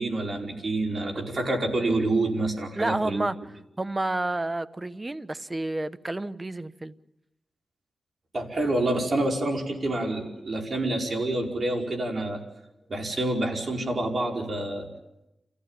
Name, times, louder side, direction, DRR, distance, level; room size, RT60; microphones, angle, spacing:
voice 1, 0.0-3.3 8.3-12.4 12.9-14.9, right 2 dB, 55° right, 1 dB, 5.1 m, -27 dB
voice 2, 2.7-3.4 3.8-7.0, right 2 dB, 25° right, 13 dB, 1.0 m, -30 dB
28.5 x 15.5 x 9.0 m, 0.93 s
cardioid pair, 70°, 0 cm